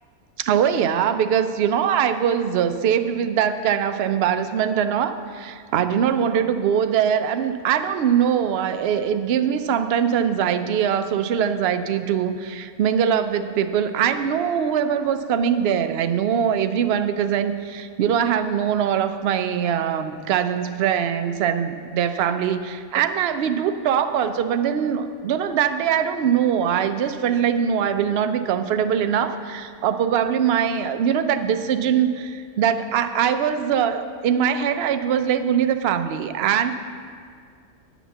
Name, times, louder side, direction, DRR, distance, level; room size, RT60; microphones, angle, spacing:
voice 1, 0.4-36.7, right 8 dB, 60° right, 10 dB, 0.7 m, -22 dB
10.0 x 6.0 x 7.1 m, 2.1 s
omnidirectional pair, 1.4 m